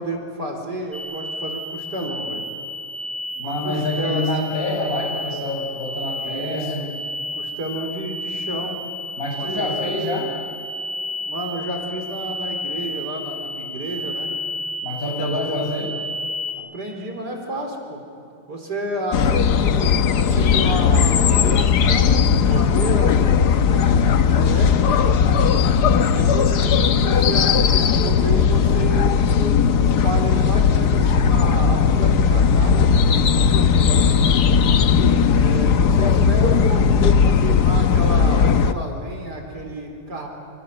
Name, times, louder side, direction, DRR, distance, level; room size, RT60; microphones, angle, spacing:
voice 1, 0.0-2.4 3.3-4.6 6.2-7.0 7.3-8.9 9.4-9.8 11.2-14.3 15.2-15.9 16.6-18.0 18.5-24.7 26.0-29.1 29.8-34.2 35.3-40.3, right 1 dB, 65° right, 3 dB, 4.8 m, -31 dB
sound 1, 0.9-16.5, left 1 dB, 5° left, 5.1 m, -31 dB
voice 2, 3.4-6.9 9.2-10.3 14.8-15.9 25.2-25.7, left 1 dB, 50° left, 1 dB, 6.5 m, -27 dB
sound 2, 19.1-38.7, left 6 dB, 65° left, 1.5 m, -17 dB
28.0 x 27.5 x 7.6 m, 2.7 s
omnidirectional pair, 1.9 m